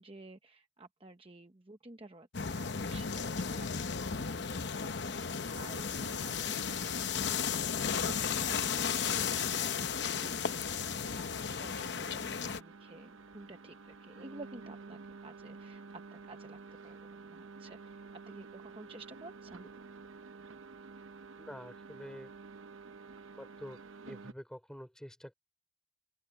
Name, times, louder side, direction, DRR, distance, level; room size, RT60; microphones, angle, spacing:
voice 1, 0.0-4.7 5.0-5.8 6.2-15.8 16.1-19.7, right 2 dB, 25° right, 0.9 m, -53 dB
sound 1, 2.3-12.6, left 6 dB, 55° left, 0.8 m, -34 dB
sound 2, 4.4-24.3, right 4 dB, 75° right, 0.9 m, -51 dB
voice 2, 21.4-22.3 23.4-25.3, equal, 5° left, 3.4 m, -47 dB
open air
head